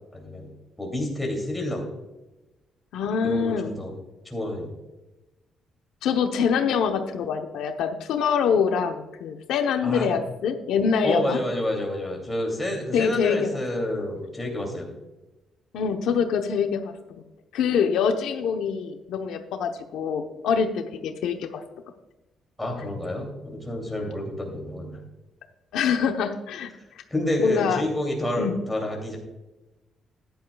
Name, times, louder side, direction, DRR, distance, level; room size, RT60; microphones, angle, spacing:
voice 1, 0.1-0.5 0.8-1.8 3.2-3.9 4.2-4.7 9.8-10.1 11.0-14.9 22.6-25.0 27.1-29.2, left 1 dB, 5° left, 0 dB, 2.7 m, -29 dB
voice 2, 2.9-3.7 6.0-11.4 12.9-13.5 15.7-16.9 17.5-21.6 25.7-26.7 27.4-27.8 28.4-28.6, left 6 dB, 85° left, 6 dB, 0.9 m, -25 dB
14.0 x 10.5 x 2.3 m, 1.0 s
cardioid pair, 150°, 0 cm